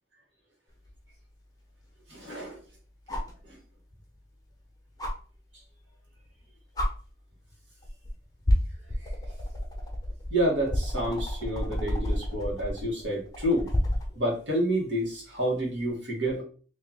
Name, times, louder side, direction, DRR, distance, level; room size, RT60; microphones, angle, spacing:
sound 1, 0.9-1.0 3.1-3.4 5.0-5.1 6.3-6.4 6.7-6.9 7.8-8.1 8.4-14.1 15.8-15.9, left 1 dB, 20° left, 0.8 m, -30 dB
voice 1, 2.1-2.6 3.1-3.2 3.4-3.6 9.0-9.1 10.3-13.7 14.1-16.4, right 1 dB, 80° right, -2 dB, 1.6 m, -29 dB
3.0 x 2.8 x 3.9 m, 0.40 s
head